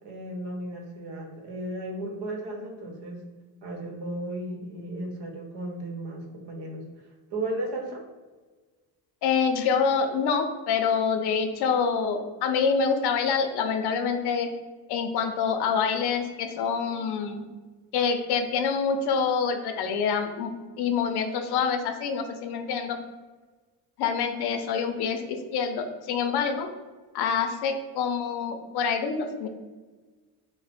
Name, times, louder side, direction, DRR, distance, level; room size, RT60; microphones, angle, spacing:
voice 1, 0.0-3.2 3.6-7.1 7.3-8.0, right 1 dB, 80° right, 2 dB, 0.9 m, -35 dB
voice 2, 9.2-14.5 14.9-17.5 17.9-23.0 24.0-26.7 27.1-29.5, left 6 dB, 75° left, 6 dB, 0.6 m, -26 dB
3.2 x 2.1 x 4.2 m, 1.3 s
cardioid pair, 135°, 40 cm